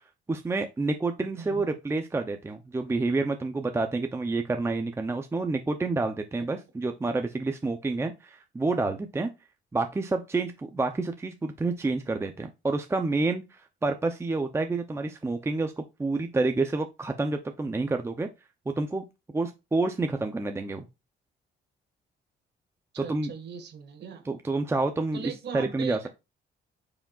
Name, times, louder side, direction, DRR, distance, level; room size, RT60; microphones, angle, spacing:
voice 1, 0.3-9.3 9.7-18.3 18.7-19.0 19.3-20.9 23.0-23.3 24.3-26.0, right 3 dB, 15° right, 0.6 m, -28 dB
voice 2, 1.4-1.8 22.9-24.2 25.1-26.1, right 6 dB, 65° right, 1.7 m, -39 dB
9.0 x 5.0 x 2.4 m
cardioid pair, 125°, 19 cm